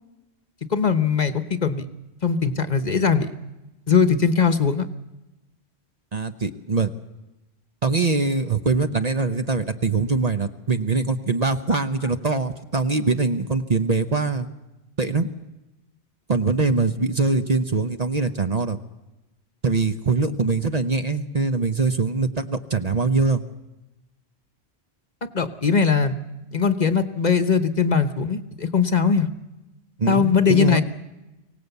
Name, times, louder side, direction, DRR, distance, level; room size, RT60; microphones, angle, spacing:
voice 1, 0.7-1.9 2.2-3.3 3.9-4.9 25.3-26.2 26.5-29.3 30.1-30.8, left 6 dB, 45° left, 11 dB, 1.0 m, -20 dB
voice 2, 6.1-6.9 7.8-14.5 15.0-15.3 16.3-18.8 19.6-23.4 30.0-30.8, right 4 dB, 40° right, 9 dB, 0.9 m, -23 dB
24.0 x 17.5 x 8.1 m, 1.0 s
omnidirectional pair, 1.1 m